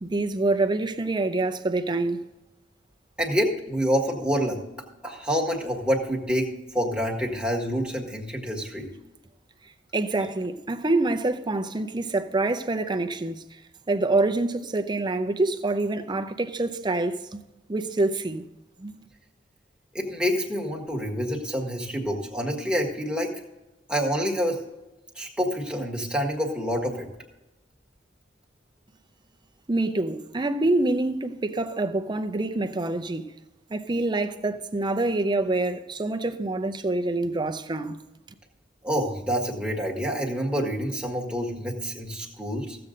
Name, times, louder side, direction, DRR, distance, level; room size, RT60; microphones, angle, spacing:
voice 1, 0.0-2.3 9.9-13.5 13.9-17.4 17.7-18.5 18.8-19.0 29.7-33.4 33.7-38.0, right 2 dB, 25° right, 0.6 m, -26 dB
voice 2, 3.2-4.6 5.0-8.9 19.9-23.3 23.9-24.6 25.1-27.1 38.8-42.8, equal, 5° right, 1.6 m, -27 dB
15.0 x 7.8 x 3.8 m
head